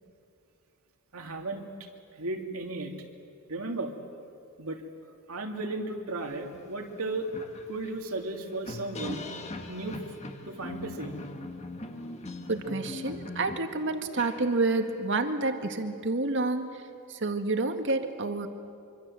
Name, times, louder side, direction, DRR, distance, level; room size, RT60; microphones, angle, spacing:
voice 1, 1.1-1.7 2.2-2.9 3.5-3.9 4.6-4.8 5.3-7.3 7.7-9.3 9.7-10.0 10.5-11.2, right 2 dB, 70° right, 3 dB, 2.7 m, -35 dB
sound 1, 6.5-6.6 7.0-15.0, left 2 dB, 30° left, 1.8 m, -41 dB
voice 2, 12.5-16.8 17.1-18.5, right 3 dB, 55° right, 6 dB, 1.9 m, -29 dB
25.0 x 25.0 x 7.8 m, 2.6 s
head